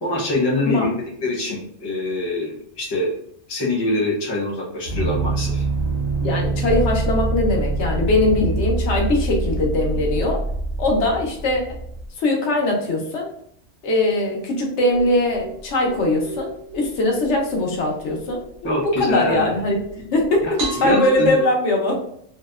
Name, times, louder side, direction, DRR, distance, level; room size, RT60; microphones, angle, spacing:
voice 1, 0.0-3.1 3.5-5.6 18.6-20.0 20.4-21.3, left 2 dB, 25° left, -4 dB, 0.6 m, -24 dB
sound 1, 4.9-12.1, right 3 dB, 60° right, 0.7 m, -24 dB
voice 2, 6.2-10.4 10.8-11.8 12.2-13.3 13.8-18.4 18.8-19.8 20.1-20.4 20.7-22.0, left 2 dB, 85° left, 0 dB, 1.0 m, -21 dB
sound 2, 14.9-21.4, right 3 dB, 80° right, 1.0 m, -35 dB
2.7 x 2.0 x 2.3 m, 0.67 s
omnidirectional pair, 1.2 m